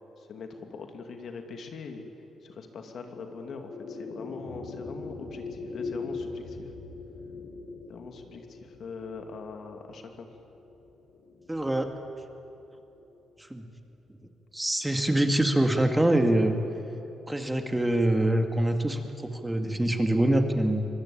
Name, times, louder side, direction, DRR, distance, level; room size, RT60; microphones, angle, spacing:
voice 1, 0.0-2.1 2.4-6.7 7.9-10.3, left 4 dB, 60° left, 5 dB, 2.5 m, -42 dB
sound 1, 2.8-13.3, left 3 dB, 80° left, 4.9 m, -42 dB
voice 2, 11.5-11.9 13.5-13.6 14.5-16.6 17.3-20.9, right 1 dB, 10° right, 5 dB, 2.0 m, -24 dB
24.5 x 20.0 x 8.7 m, 2.9 s
cardioid pair, 80°, 0 cm